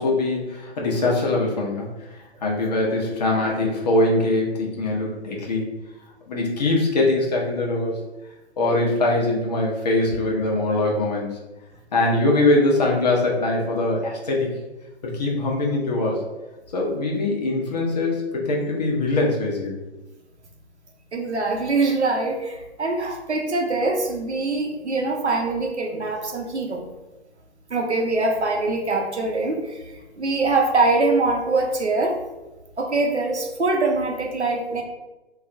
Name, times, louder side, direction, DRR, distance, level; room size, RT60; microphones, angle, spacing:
voice 1, 0.0-5.7 6.3-8.0 8.6-11.4 11.9-14.6 15.0-16.2 16.7-19.8, left 2 dB, 40° left, -2 dB, 0.7 m, -22 dB
voice 2, 21.1-26.8 27.7-32.2 32.8-34.8, right 3 dB, 90° right, 2 dB, 0.6 m, -23 dB
2.4 x 2.1 x 3.7 m, 1.1 s
figure-of-eight pair, 135°, 33 cm